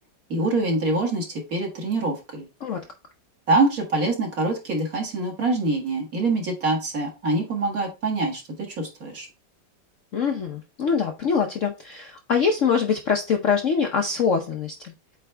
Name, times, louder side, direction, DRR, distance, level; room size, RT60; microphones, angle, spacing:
voice 1, 0.3-2.5 3.5-8.4 8.8-9.3, right 2 dB, 50° right, 0 dB, 2.1 m, -24 dB
voice 2, 10.1-14.9, left 6 dB, 60° left, 4 dB, 0.8 m, -24 dB
8.4 x 3.4 x 3.4 m, 0.28 s
omnidirectional pair, 2.1 m